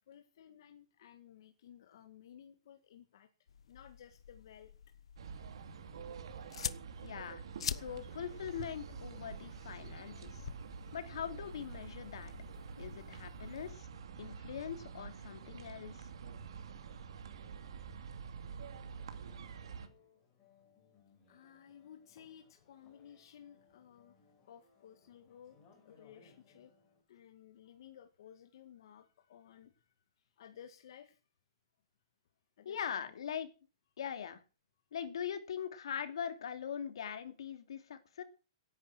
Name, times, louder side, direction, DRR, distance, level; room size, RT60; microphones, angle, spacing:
voice 1, 0.1-3.3 3.7-4.7 21.3-24.2 24.5-25.6 25.9-26.7 27.1-29.8 30.4-31.2 32.6-33.1, left 9 dB, 50° left, 6 dB, 1.8 m, -56 dB
sound 1, 3.5-13.8, left 8 dB, 85° left, 1.0 m, -47 dB
sound 2, 5.2-19.9, right 6 dB, 65° right, 2.7 m, -48 dB
voice 2, 7.0-10.4 10.9-12.3 12.8-13.9 14.2-16.1 32.6-33.5 34.0-34.4 34.9-38.2, left 8 dB, 70° left, 9 dB, 2.8 m, -42 dB
sound 3, 18.9-27.0, left 5 dB, 20° left, 5.2 m, -67 dB
17.0 x 10.5 x 6.3 m, 0.35 s
hypercardioid pair, 175°, 3 cm